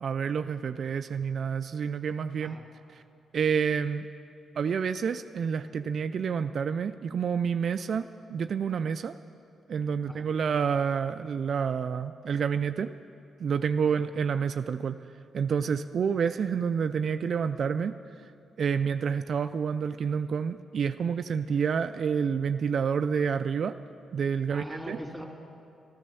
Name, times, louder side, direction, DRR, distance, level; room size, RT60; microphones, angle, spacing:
voice 1, 0.0-2.6 3.3-4.1 4.6-9.2 9.7-12.9 13.4-15.0 15.3-18.0 18.6-23.8 24.1-25.0, right 6 dB, 60° right, 10 dB, 0.3 m, -28 dB
voice 2, 24.5-25.3, equal, ahead, 0 dB, 2.6 m, -41 dB
12.5 x 11.0 x 6.9 m, 2.6 s
cardioid pair, 70°, 0 cm